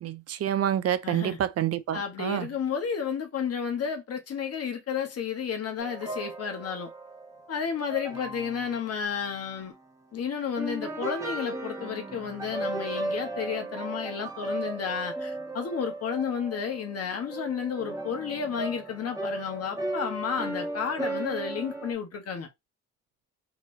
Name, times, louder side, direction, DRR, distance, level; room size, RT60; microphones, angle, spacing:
voice 1, 0.0-2.5, right 11 dB, 55° right, 0.5 m, -28 dB
voice 2, 1.0-1.4 1.9-6.9 7.5-9.7 10.1-22.5, left 7 dB, 55° left, 1.2 m, -32 dB
sound 1, 5.8-8.9 9.4-9.8 10.6-21.9, right 2 dB, 10° right, 1.4 m, -36 dB
4.0 x 3.0 x 2.6 m
cardioid pair, 90°, 30 cm